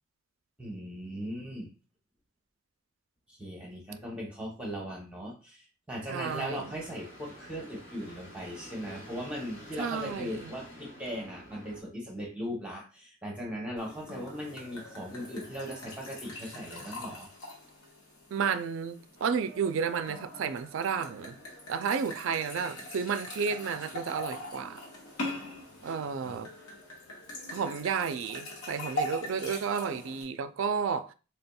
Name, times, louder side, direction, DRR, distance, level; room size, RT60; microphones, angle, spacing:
voice 1, 0.6-1.7 3.3-17.3 26.2-26.4, equal, 5° right, 0.7 m, -39 dB
voice 2, 6.1-6.6 9.8-10.5 18.3-21.4 21.7-24.8 25.8-26.5 27.5-31.1, right 6 dB, 65° right, 0.3 m, -32 dB
sound 1, 6.5-11.8, equal, 60° left, 1.2 m, -49 dB
sound 2, 13.8-30.2, left 1 dB, 85° left, 1.3 m, -42 dB
4.2 x 3.3 x 2.2 m
head